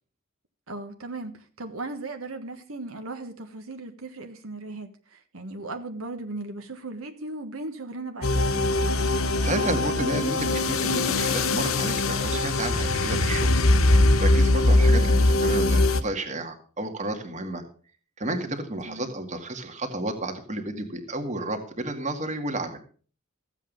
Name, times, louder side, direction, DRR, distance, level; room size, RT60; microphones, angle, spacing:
voice 1, 0.7-8.7 14.9-15.1 18.5-18.6 18.9-19.1, right 2 dB, 75° right, 1.5 m, -37 dB
sound 1, 8.2-16.0, left 2 dB, 85° left, 1.1 m, -21 dB
voice 2, 9.0-13.6 14.2-17.6 18.2-22.8, right 2 dB, 35° right, 2.0 m, -32 dB
14.5 x 8.3 x 5.3 m
head